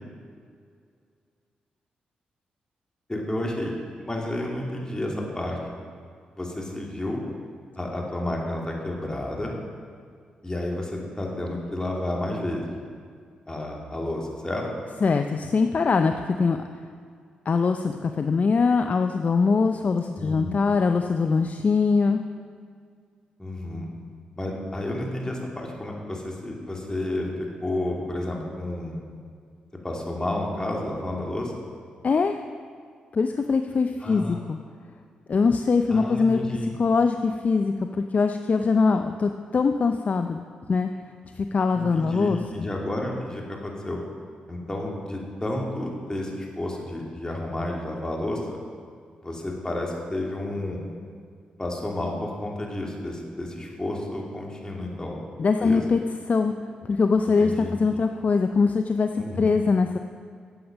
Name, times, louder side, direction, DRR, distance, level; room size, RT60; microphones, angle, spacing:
voice 1, 3.1-5.6 6.4-7.2 7.8-9.5 10.4-12.6 13.5-14.6 20.1-20.6 23.4-23.9 24.4-29.0 29.8-31.5 34.0-34.4 35.9-36.7 41.7-44.0 44.5-48.6 49.2-50.8 51.6-55.2 55.6-55.8 57.4-57.7 59.2-59.5, left 1 dB, 20° left, -1 dB, 2.8 m, -31 dB
voice 2, 15.0-16.8 17.5-22.2 32.0-32.4 33.1-34.6 35.3-36.4 36.8-40.4 40.7-40.9 41.4-42.4 55.4-56.0 56.3-56.5 56.8-60.0, left 4 dB, 45° left, 7 dB, 0.6 m, -22 dB
13.0 x 7.9 x 5.3 m, 2.1 s
hypercardioid pair, 40°, 3 cm